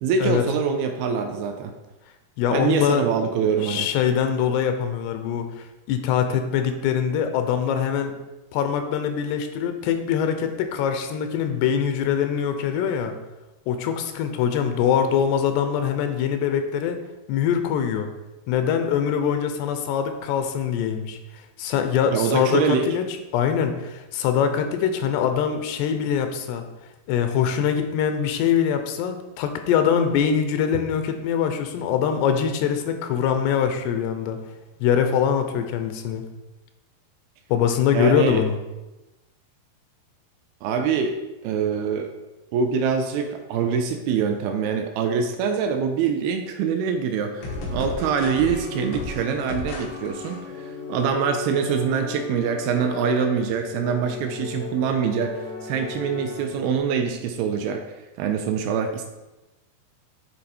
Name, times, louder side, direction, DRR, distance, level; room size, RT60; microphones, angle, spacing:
voice 1, 0.0-1.7 2.5-3.9 22.1-22.9 37.9-38.4 40.6-42.1 42.5-55.3 55.6-57.8 58.2-59.1, right 6 dB, 80° right, 5 dB, 2.3 m, -24 dB
voice 2, 2.4-3.1 3.6-8.2 8.5-13.1 13.7-17.0 17.3-18.1 18.5-21.2 21.6-23.0 23.3-26.6 27.1-34.4 34.8-36.3 37.5-38.6, left 8 dB, 85° left, 7 dB, 2.8 m, -23 dB
sound 1, 47.4-56.8, left 4 dB, 60° left, 1.7 m, -34 dB
9.5 x 4.0 x 4.2 m, 1.1 s
omnidirectional pair, 4.7 m